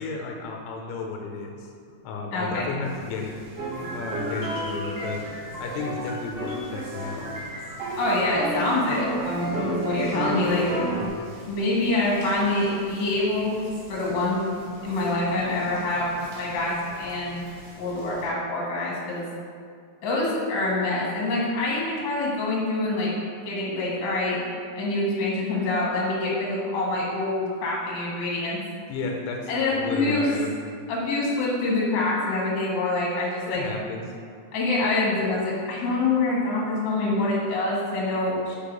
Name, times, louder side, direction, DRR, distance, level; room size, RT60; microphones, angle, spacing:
voice 1, 0.0-1.7 2.0-5.2 5.6-7.3 28.9-30.5 33.5-34.0, left 4 dB, 90° left, 2 dB, 2.7 m, -33 dB
voice 2, 2.3-2.7 8.0-10.7 11.5-13.5 13.9-14.4 14.8-17.5 17.8-19.3 20.0-23.1 23.4-24.4 24.7-28.6 29.5-30.3 30.9-33.6 34.5-38.6, left 2 dB, 55° left, -5 dB, 2.5 m, -25 dB
sound 1, 2.8-18.3, right 1 dB, 55° right, 2.6 m, -45 dB
sound 2, 3.6-11.1, right 1 dB, 75° right, 1.4 m, -31 dB
5.6 x 4.6 x 5.4 m, 2.2 s
omnidirectional pair, 4.4 m